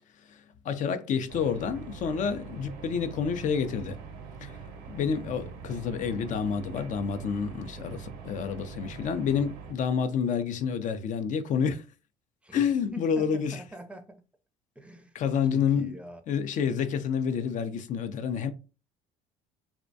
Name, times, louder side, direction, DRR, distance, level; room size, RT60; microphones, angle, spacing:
voice 1, 0.3-4.0 4.4-4.5 4.9-11.8 12.5-13.6 15.1-15.9 16.3-18.5, left 7 dB, 50° left, 0.4 m, -29 dB
sound 1, 1.3-9.7, right 6 dB, 75° right, 0.5 m, -43 dB
voice 2, 12.4-14.2 14.8-16.2, right 1 dB, 5° right, 0.5 m, -45 dB
2.4 x 2.1 x 2.6 m
supercardioid pair, 85°, 16 cm